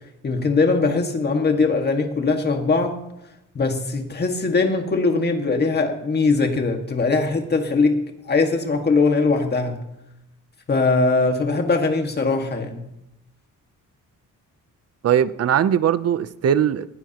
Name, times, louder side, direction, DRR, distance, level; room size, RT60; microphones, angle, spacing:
voice 1, 0.2-3.0 3.6-8.0 8.3-9.8 10.7-12.8, left 3 dB, 30° left, 1.9 m, -21 dB
voice 2, 15.0-16.9, right 9 dB, 50° right, 0.7 m, -20 dB
20.0 x 16.5 x 3.0 m
wide cardioid pair, 155°, 32 cm